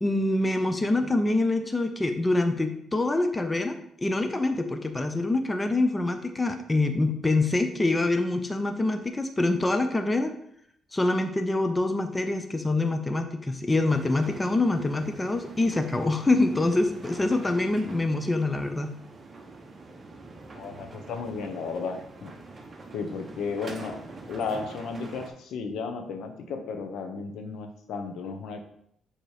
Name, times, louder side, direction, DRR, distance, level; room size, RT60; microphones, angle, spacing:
voice 1, 0.0-10.3 10.9-18.9, left 2 dB, 20° left, 6 dB, 0.6 m, -25 dB
sound 1, 13.8-25.3, right 3 dB, 35° right, 0.9 m, -45 dB
voice 2, 20.5-22.4 22.9-24.0 24.3-28.6, left 5 dB, 80° left, 5 dB, 0.8 m, -34 dB
6.6 x 3.0 x 4.8 m, 0.70 s
cardioid pair, 90°, 0 cm